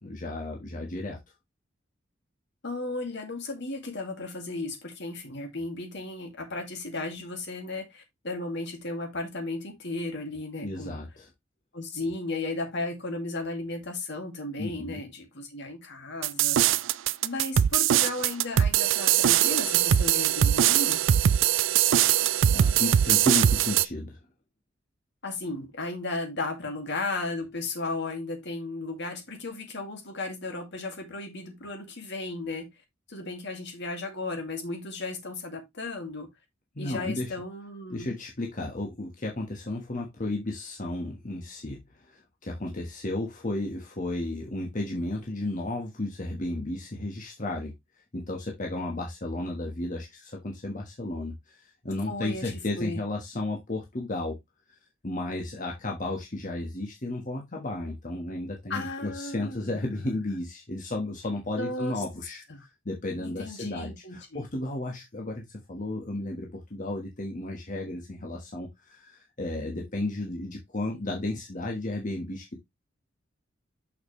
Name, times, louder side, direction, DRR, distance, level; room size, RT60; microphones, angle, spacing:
voice 1, 0.0-1.2 10.6-11.3 14.6-15.0 22.5-24.2 36.7-37.3 37.9-47.7 48.1-54.4 55.0-62.4 62.8-72.6, left 2 dB, 40° left, 1.3 m, -33 dB
voice 2, 2.6-11.0 11.7-16.6 17.2-21.0 25.2-32.7 33.1-36.3 36.8-38.1 52.1-53.0 58.7-59.8 61.6-62.0 62.5-62.7 63.2-64.4, left 2 dB, 65° left, 2.2 m, -35 dB
sound 1, 16.2-23.8, right 10 dB, 70° right, 0.4 m, -22 dB
6.6 x 5.9 x 3.2 m
head